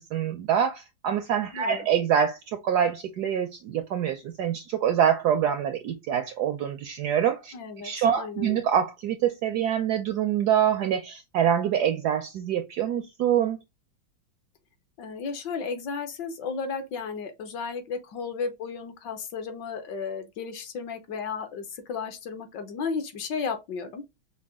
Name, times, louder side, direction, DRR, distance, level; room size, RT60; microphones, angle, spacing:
voice 1, 0.1-7.5 7.8-13.6, right 9 dB, 75° right, 0.9 m, -25 dB
voice 2, 1.5-1.9 7.5-8.6 15.0-24.0, left 5 dB, 65° left, 1.3 m, -34 dB
5.7 x 2.3 x 3.4 m
omnidirectional pair, 2.2 m